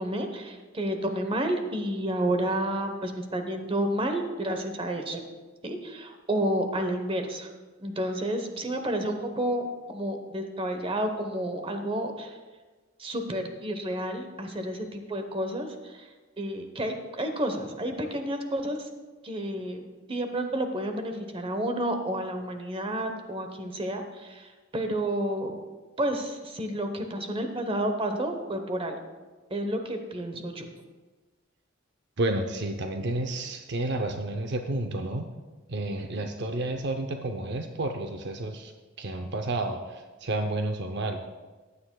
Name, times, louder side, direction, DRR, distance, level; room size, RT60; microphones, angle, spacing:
voice 1, 0.0-5.3 5.6-7.5 7.8-12.4 13.0-16.1 16.4-18.9 19.2-25.6 26.0-29.0 29.5-30.7, right 1 dB, 30° right, 6 dB, 0.9 m, -30 dB
voice 2, 32.2-35.3 35.7-38.7 39.0-41.2, right 2 dB, 60° right, 5 dB, 0.6 m, -30 dB
15.0 x 9.5 x 2.3 m, 1.3 s
head